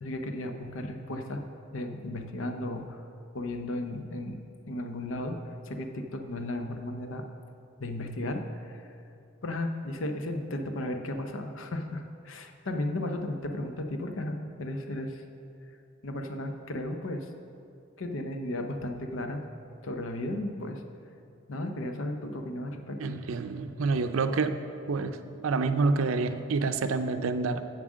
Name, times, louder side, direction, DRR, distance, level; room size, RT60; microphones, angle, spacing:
voice 1, 0.0-1.4 1.7-3.1 3.3-7.2 7.8-8.9 9.4-15.2 16.0-17.3 18.0-19.4 19.8-20.8 21.5-23.1, left 1 dB, 75° left, 5 dB, 0.7 m, -35 dB
voice 2, 23.0-24.6 24.9-25.2 25.4-27.6, right 4 dB, 80° right, 10 dB, 0.5 m, -27 dB
7.4 x 7.3 x 6.3 m, 2.7 s
head